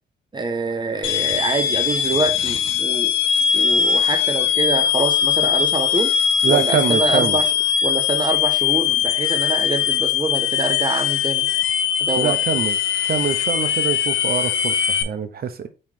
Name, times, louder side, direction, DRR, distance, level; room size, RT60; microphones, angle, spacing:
voice 1, 0.3-3.1 3.5-6.1 6.5-7.5 7.8-11.5 12.0-12.3, right 3 dB, 20° right, 1.0 m, -25 dB
sound 1, 1.0-15.0, left 8 dB, 85° left, 0.6 m, -20 dB
voice 2, 6.4-7.4 12.2-12.8 13.0-15.7, right 7 dB, 50° right, 0.8 m, -24 dB
4.5 x 3.2 x 3.6 m
cardioid pair, 90°, 20 cm